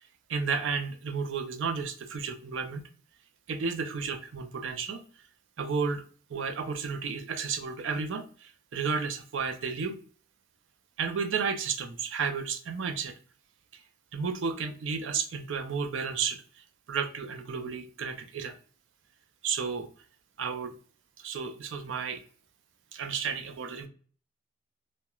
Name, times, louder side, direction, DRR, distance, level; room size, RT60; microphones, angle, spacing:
voice 1, 0.3-2.9 3.5-5.0 5.6-6.0 6.3-9.9 11.0-13.1 13.7-13.8 14.1-18.6 19.4-19.9 20.4-20.7 21.2-22.2 22.9-23.9, right 5 dB, 70° right, 6 dB, 0.4 m, -32 dB
2.3 x 2.1 x 2.9 m, 0.41 s
head